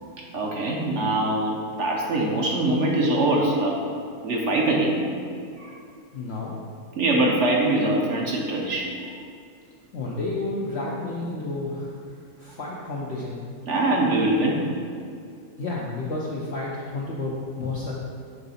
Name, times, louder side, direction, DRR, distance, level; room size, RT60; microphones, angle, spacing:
voice 1, 0.0-3.8 4.2-5.0 5.6-5.7 7.0-8.9 13.6-14.7, right 2 dB, 55° right, -2 dB, 0.8 m, -23 dB
voice 2, 6.1-6.5 9.9-11.9 12.4-13.4 15.6-17.9, left 2 dB, 80° left, -4 dB, 0.5 m, -31 dB
5.7 x 3.9 x 5.5 m, 2.4 s
omnidirectional pair, 2.0 m